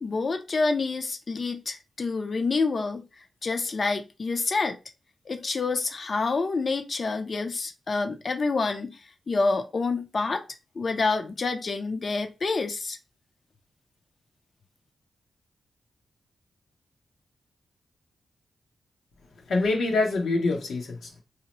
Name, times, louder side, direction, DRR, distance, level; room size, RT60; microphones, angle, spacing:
voice 1, 0.0-3.0 3.4-4.8 5.3-9.0 9.3-10.5 10.8-13.0, left 3 dB, 45° left, 0.5 m, -27 dB
voice 2, 19.5-21.2, left 3 dB, 80° left, 0.8 m, -25 dB
2.7 x 2.1 x 2.9 m
cardioid pair, 85°, 0 cm